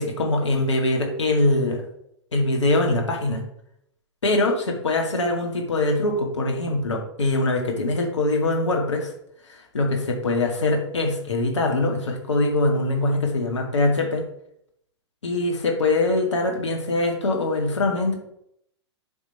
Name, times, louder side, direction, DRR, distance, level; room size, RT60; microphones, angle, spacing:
voice 1, 0.0-1.8 2.3-3.4 4.2-9.1 9.5-14.2 15.2-18.2, left 2 dB, 80° left, 1 dB, 2.2 m, -23 dB
10.5 x 3.8 x 4.5 m, 0.74 s
figure-of-eight pair, 110°, 15 cm